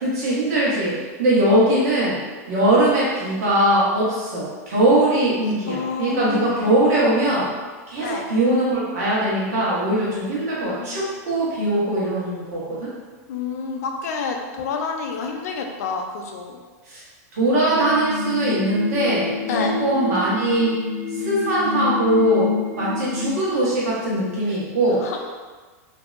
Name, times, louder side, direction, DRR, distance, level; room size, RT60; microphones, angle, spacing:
voice 1, 0.0-2.2 2.5-7.5 7.9-12.9 16.9-17.0 17.3-19.3 19.8-20.8 21.1-25.0, right 1 dB, 80° right, -7 dB, 1.1 m, -21 dB
voice 2, 5.7-6.8 8.0-8.2 10.6-11.1 13.3-16.6 19.5-19.8 25.0-25.2, left 5 dB, 75° left, 3 dB, 0.4 m, -29 dB
sound 1, 17.6-23.3, left 2 dB, 15° right, 0.3 m, -27 dB
2.6 x 2.2 x 2.4 m, 1.4 s
supercardioid pair, 170°, 9 cm